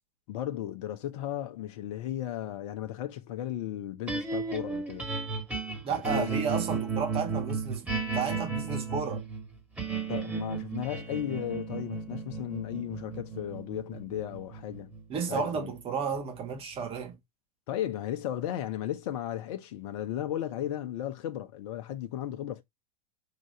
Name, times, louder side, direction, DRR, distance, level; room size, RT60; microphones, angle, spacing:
voice 1, 0.3-5.0 5.9-6.4 10.1-14.9 15.3-15.7 17.7-22.6, left 12 dB, 50° left, 1.0 m, -35 dB
sound 1, 4.1-16.4, right 5 dB, 10° right, 2.2 m, -34 dB
voice 2, 5.8-9.2 15.1-17.2, right 6 dB, 30° right, 2.0 m, -32 dB
5.9 x 4.0 x 5.1 m
figure-of-eight pair, 90°, 19 cm